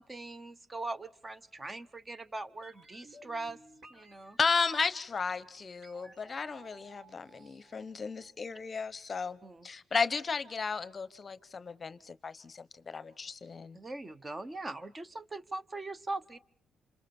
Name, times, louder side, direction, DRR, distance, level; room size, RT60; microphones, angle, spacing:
voice 1, 0.0-3.6 3.9-4.4 9.4-9.7 13.7-16.4, right 2 dB, 25° right, 0.9 m, -41 dB
sound 1, 2.6-8.7 8.9-9.0, right 2 dB, 60° right, 4.7 m, -58 dB
voice 2, 4.4-9.4 9.6-13.8, left 5 dB, 35° left, 0.8 m, -34 dB
27.5 x 27.0 x 4.3 m
cardioid pair, 90°, 0 cm